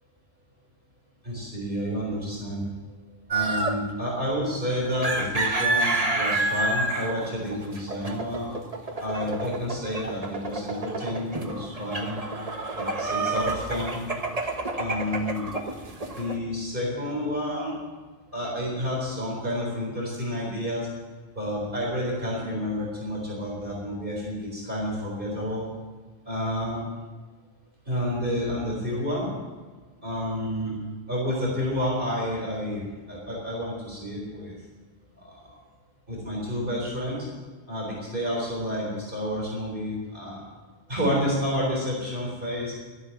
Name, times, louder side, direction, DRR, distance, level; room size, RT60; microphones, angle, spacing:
voice 1, 1.2-2.6 3.1-8.5 9.0-12.2 12.7-14.0 14.8-15.4 16.0-17.8 18.3-20.9 21.3-25.6 26.2-26.8 27.9-29.3 30.0-30.7 31.1-34.5 35.2-35.6 36.1-37.3 37.7-40.4 40.9-42.7, equal, 55° right, -3 dB, 4.3 m, -30 dB
sound 1, 3.3-3.8 4.9-16.4, right 2 dB, 35° right, 1.4 m, -29 dB
13.0 x 11.5 x 7.2 m, 1.4 s
omnidirectional pair, 1.1 m